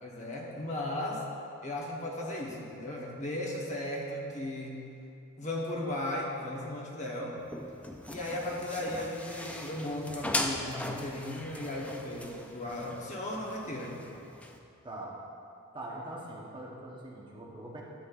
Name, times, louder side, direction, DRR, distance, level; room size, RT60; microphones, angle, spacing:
voice 1, 0.0-1.2 1.6-4.8 5.4-7.4 8.1-14.0, left 1 dB, 35° left, -2 dB, 1.0 m, -36 dB
sound 1, 7.4-14.6, left 1 dB, 5° left, 0.4 m, -39 dB
voice 2, 14.8-15.2 15.7-17.8, right 1 dB, 20° right, -4 dB, 0.9 m, -42 dB
11.5 x 7.3 x 2.4 m, 2.6 s
head